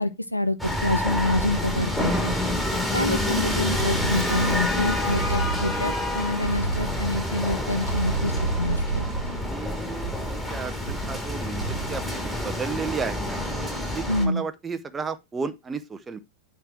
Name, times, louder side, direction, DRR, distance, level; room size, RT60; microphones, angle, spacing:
voice 1, 0.0-2.3 2.7-9.1 14.1-14.4, left 1 dB, 85° left, 0.6 m, -27 dB
sound 1, 0.6-14.3, left 1 dB, 5° left, 2.7 m, -28 dB
sound 2, 3.8-4.6 5.1-6.0 6.4-7.2 7.9-10.4 10.9-11.2 11.6-12.1, right 3 dB, 90° right, 1.2 m, -30 dB
voice 2, 9.4-13.4 13.9-16.2, right 5 dB, 15° right, 0.7 m, -33 dB
8.8 x 4.6 x 4.6 m
figure-of-eight pair, 90°, 0 cm